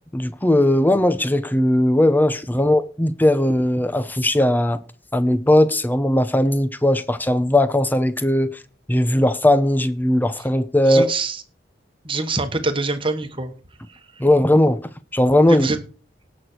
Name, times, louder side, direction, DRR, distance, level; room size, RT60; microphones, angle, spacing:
voice 1, 0.1-4.8 5.1-8.6 8.9-11.1 14.2-15.7, left 1 dB, 10° left, 0.8 m, -18 dB
voice 2, 10.8-11.4 12.0-13.5 13.9-14.3 15.5-15.8, right 3 dB, 30° right, 1.5 m, -25 dB
18.0 x 6.4 x 4.5 m
head